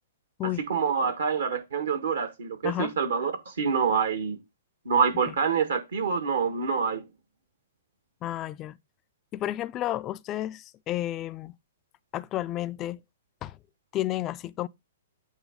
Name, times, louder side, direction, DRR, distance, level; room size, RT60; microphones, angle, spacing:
voice 1, 0.7-4.4 4.8-7.0, right 6 dB, 70° right, 1.5 m, -26 dB
voice 2, 8.2-8.8 9.3-11.5 12.1-13.0 13.4-13.6 13.9-14.7, left 14 dB, 30° left, 0.4 m, -31 dB
8.3 x 2.9 x 5.0 m
figure-of-eight pair, 115°, 0 cm